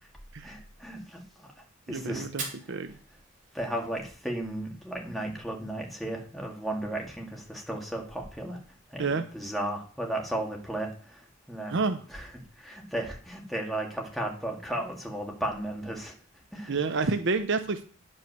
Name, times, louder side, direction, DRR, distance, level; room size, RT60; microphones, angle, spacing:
voice 1, 0.4-1.5 1.9-2.3 3.5-8.6 8.9-11.8 12.1-12.3 12.6-16.2 16.5-16.8, right 1 dB, ahead, 0 dB, 1.9 m, -35 dB
voice 2, 1.9-2.4 2.7-3.0 9.0-9.2 11.7-12.0 16.7-17.8, right 4 dB, 55° right, 10 dB, 0.6 m, -28 dB
Fire, 2.2-4.2, right 4 dB, 35° right, 2.7 m, -42 dB
9.9 x 5.4 x 6.6 m, 0.43 s
head